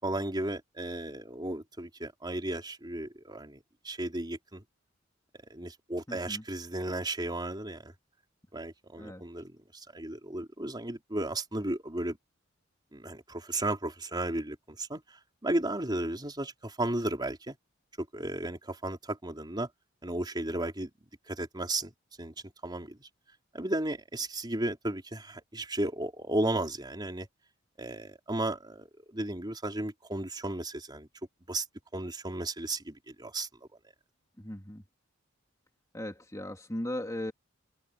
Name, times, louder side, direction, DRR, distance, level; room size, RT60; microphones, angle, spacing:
voice 1, 0.0-3.6 3.8-4.6 5.5-7.9 8.5-12.2 12.9-17.6 18.0-19.7 20.0-20.9 21.3-21.9 22.2-22.3 22.6-23.1 23.5-27.3 27.8-31.1 31.5-31.7 31.9-33.5, right 1 dB, 20° right, 3.9 m, -34 dB
voice 2, 6.1-6.4 9.0-9.2 34.4-34.8 35.9-37.3, left 1 dB, 15° left, 2.7 m, -37 dB
open air
head